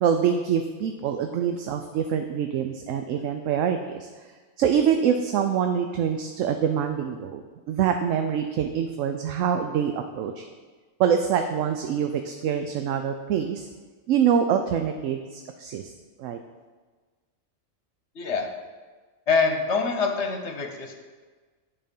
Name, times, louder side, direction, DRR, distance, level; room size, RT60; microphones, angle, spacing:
voice 1, 0.0-4.1 4.6-7.4 7.7-10.4 11.0-13.7 14.1-15.9 16.2-16.4, right 8 dB, 75° right, 6 dB, 0.9 m, -25 dB
voice 2, 18.1-18.5 19.3-21.0, left 4 dB, 60° left, 4 dB, 1.2 m, -25 dB
8.9 x 5.5 x 5.3 m, 1.4 s
omnidirectional pair, 1.4 m